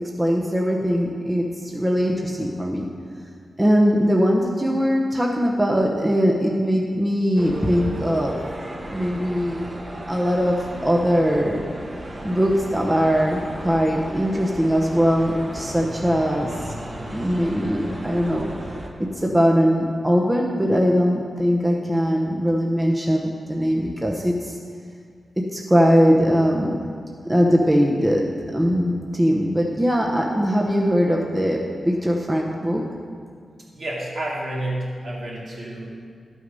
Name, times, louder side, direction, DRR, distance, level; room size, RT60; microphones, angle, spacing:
voice 1, 0.2-2.9 3.6-8.3 8.9-9.7 10.1-11.6 12.2-16.5 17.1-18.5 19.0-24.6 25.4-26.8 27.2-31.6 31.8-32.8, equal, 10° right, -1 dB, 0.9 m, -21 dB
sound 1, 7.4-18.9, right 1 dB, 35° right, 1.2 m, -35 dB
voice 2, 33.7-35.9, right 1 dB, 65° right, -5 dB, 2.7 m, -29 dB
11.5 x 6.4 x 5.4 m, 2.1 s
wide cardioid pair, 90°, 0 cm